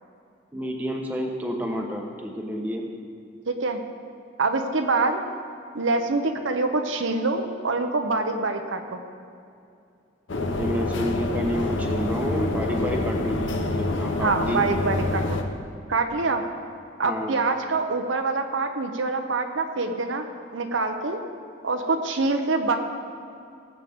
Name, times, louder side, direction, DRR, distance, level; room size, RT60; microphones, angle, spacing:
voice 1, 0.5-2.8 10.3-14.6 17.0-17.3, equal, 10° right, 0 dB, 1.0 m, -29 dB
voice 2, 3.5-3.8 4.4-5.2 5.7-9.0 14.2-15.4 15.9-16.4 17.0-20.3 20.5-21.2 21.6-22.8, right 3 dB, 75° right, 5 dB, 0.9 m, -25 dB
sound 1, 10.3-15.4, left 2 dB, 75° left, 0.9 m, -27 dB
18.5 x 8.2 x 3.6 m, 2.5 s
head